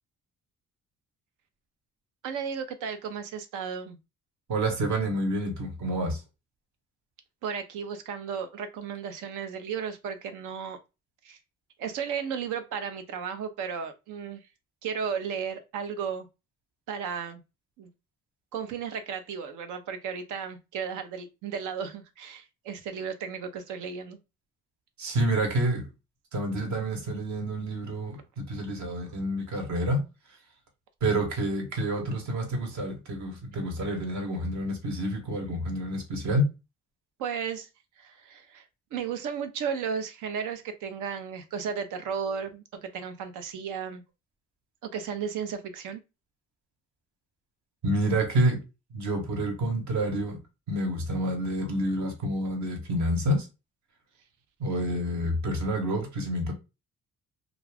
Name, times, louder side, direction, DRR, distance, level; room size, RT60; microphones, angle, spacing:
voice 1, 2.2-4.0 7.4-10.8 11.2-11.4 11.8-14.5 14.8-16.3 16.9-17.4 17.8-17.9 18.5-24.2 37.2-37.7 38.0-38.6 38.9-44.0 44.8-46.0, right 6 dB, 85° right, 0.7 m, -34 dB
voice 2, 4.5-6.2 25.0-25.9 26.3-30.0 31.0-36.5 47.8-48.6 48.9-50.4 50.7-53.5 54.6-56.5, right 1 dB, 70° right, 1.1 m, -28 dB
2.5 x 2.3 x 3.3 m
cardioid pair, 90°, 30 cm